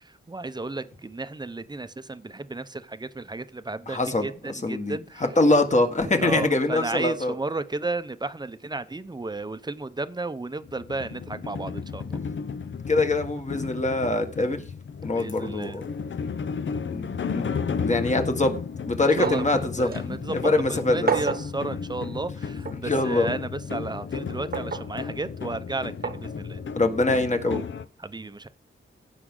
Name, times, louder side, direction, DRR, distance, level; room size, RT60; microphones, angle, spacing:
voice 1, 0.3-5.2 6.2-12.2 15.2-15.8 19.0-26.6 28.0-28.5, right 2 dB, 20° right, 0.7 m, -33 dB
voice 2, 3.9-7.3 12.2-12.3 12.9-14.6 15.0-15.9 16.9-17.1 17.3-17.5 17.8-21.1 22.7-23.3 26.7-27.6, left 2 dB, 35° left, 1.6 m, -24 dB
sound 1, 10.6-27.8, left 6 dB, 65° left, 0.7 m, -34 dB
sound 2, 19.2-19.6 19.9-20.0 21.1-21.5 22.6-22.8 24.5-24.9 26.0-26.2 27.5-27.6, right 5 dB, 45° right, 1.0 m, -28 dB
16.5 x 6.0 x 3.8 m
wide cardioid pair, 135°, 21 cm